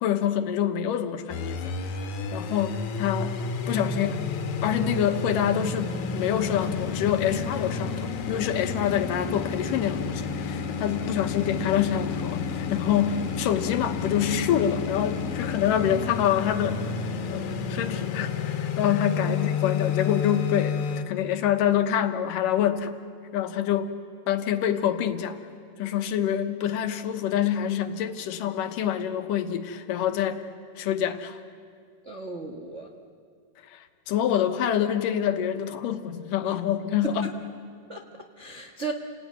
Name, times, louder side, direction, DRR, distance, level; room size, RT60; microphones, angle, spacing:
voice 1, 0.0-1.7 2.3-3.4 3.7-4.2 4.6-16.9 17.3-22.9 23.3-23.9 24.3-25.4 25.8-30.4 30.8-31.4 33.7-37.3, left 9 dB, 85° left, 8 dB, 2.7 m, -26 dB
sound 1, 1.3-21.0, left 5 dB, 65° left, 2.6 m, -30 dB
voice 2, 32.0-32.9 37.2-37.3 37.9-38.0 38.4-38.9, right 3 dB, 55° right, 2 dB, 0.7 m, -35 dB
29.5 x 18.0 x 9.5 m, 2.2 s
omnidirectional pair, 3.8 m